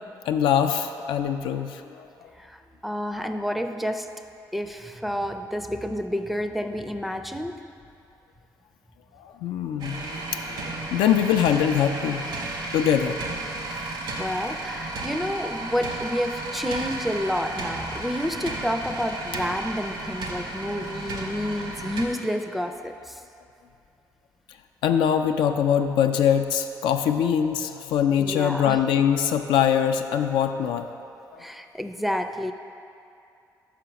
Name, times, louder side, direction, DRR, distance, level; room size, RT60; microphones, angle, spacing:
voice 1, 0.3-2.1 9.2-10.6 10.9-12.3 12.7-13.2 24.8-30.9 31.3-31.4, left 8 dB, 85° left, 6 dB, 0.3 m, -23 dB
voice 2, 2.4-4.1 4.5-7.5 13.7-23.2 28.2-28.8 31.4-32.5, equal, ahead, 6 dB, 0.4 m, -29 dB
sound 1, 9.8-22.1, right 2 dB, 75° right, 1.0 m, -33 dB
5.6 x 5.0 x 5.8 m, 2.6 s
supercardioid pair, 65°, 8 cm